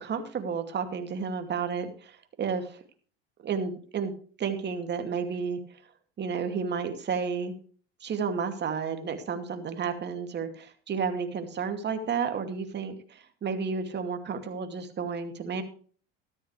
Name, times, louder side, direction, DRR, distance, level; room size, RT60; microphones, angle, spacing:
voice 1, 0.0-2.8 3.4-4.1 4.4-5.6 6.2-7.6 8.0-15.6, right 6 dB, 35° right, 7 dB, 2.5 m, -31 dB
13.5 x 13.5 x 3.3 m, 0.42 s
supercardioid pair, 100°, 30 cm